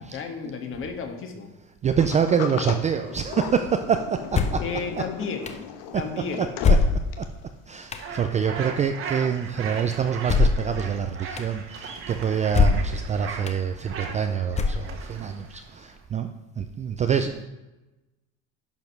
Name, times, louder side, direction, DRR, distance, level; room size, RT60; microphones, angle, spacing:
voice 1, 0.0-1.5 4.6-5.5 5.9-6.5, left 5 dB, 40° left, 4 dB, 1.6 m, -32 dB
voice 2, 1.8-4.6 6.7-6.8 7.2-7.3 7.7-16.3 16.6-17.4, right 7 dB, 20° right, 7 dB, 0.3 m, -26 dB
Sliding door, 2.0-7.4, left 8 dB, 90° left, 1.2 m, -37 dB
sound 1, 4.3-4.7 5.5-5.6 6.6-7.3 7.9-8.1 10.2-10.7 11.4-11.5 12.5-13.0 13.5-13.6 14.5-15.1, left 4 dB, 20° left, 0.7 m, -21 dB
sound 2, 8.0-16.0, right 5 dB, 40° right, 1.4 m, -38 dB
10.5 x 5.2 x 6.0 m, 1.0 s
cardioid pair, 155°, 33 cm